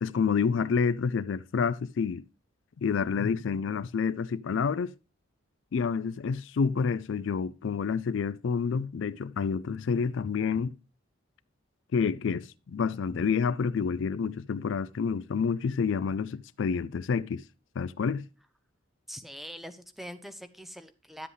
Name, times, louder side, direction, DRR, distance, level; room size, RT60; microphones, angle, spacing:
voice 1, 0.0-2.2 2.8-4.9 5.7-10.7 11.9-17.4 17.8-18.2, left 5 dB, 70° left, 0.4 m, -28 dB
voice 2, 19.1-21.3, equal, ahead, 0.5 m, -43 dB
11.0 x 7.7 x 3.2 m
head